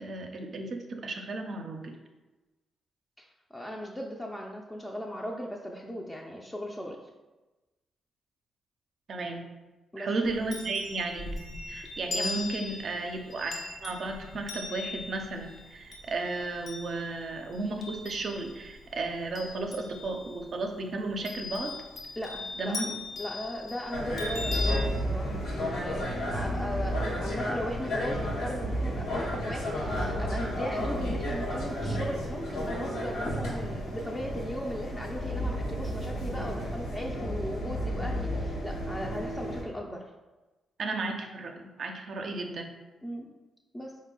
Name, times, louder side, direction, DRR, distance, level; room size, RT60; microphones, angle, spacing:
voice 1, 0.0-1.9 9.1-9.5 10.0-11.3 11.7-21.7 22.6-22.9 40.8-42.7, right 2 dB, 60° right, 4 dB, 0.5 m, -34 dB
voice 2, 3.2-7.0 9.9-10.1 12.1-12.3 22.2-40.0 43.0-43.4 43.7-44.0, equal, 15° left, -1 dB, 0.4 m, -37 dB
Chime, 10.2-18.7 19.1-20.4 21.2-24.8, left 3 dB, 55° left, 0.7 m, -39 dB
sound 1, 23.9-39.6, equal, 85° left, 0.9 m, -32 dB
4.0 x 2.1 x 3.7 m, 1.1 s
supercardioid pair, 55°, 0 cm